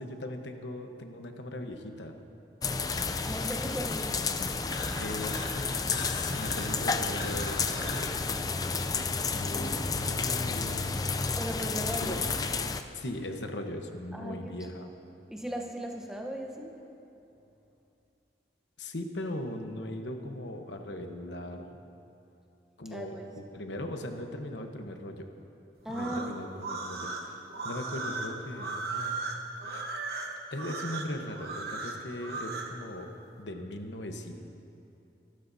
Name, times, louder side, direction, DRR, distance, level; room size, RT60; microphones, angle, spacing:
voice 1, 0.0-2.1 5.0-8.2 9.3-10.8 12.0-12.2 12.9-14.9 18.8-21.8 22.8-25.3 25.9-27.4 27.6-29.2 29.6-29.9 30.5-34.3, left 1 dB, 85° left, 5 dB, 1.1 m, -39 dB
sound 1, 2.6-12.8, left 4 dB, 20° left, 0.4 m, -31 dB
voice 2, 3.2-4.1 11.4-12.2 14.1-14.7 15.3-16.8 22.9-23.2 25.8-26.2, right 1 dB, 5° right, 1 dB, 0.9 m, -37 dB
sound 2, 4.7-5.6 5.9-8.1, left 3 dB, 55° left, 1.8 m, -41 dB
sound 3, 25.8-32.7, right 3 dB, 60° right, 1.2 m, -36 dB
24.5 x 13.0 x 2.7 m, 2.7 s
head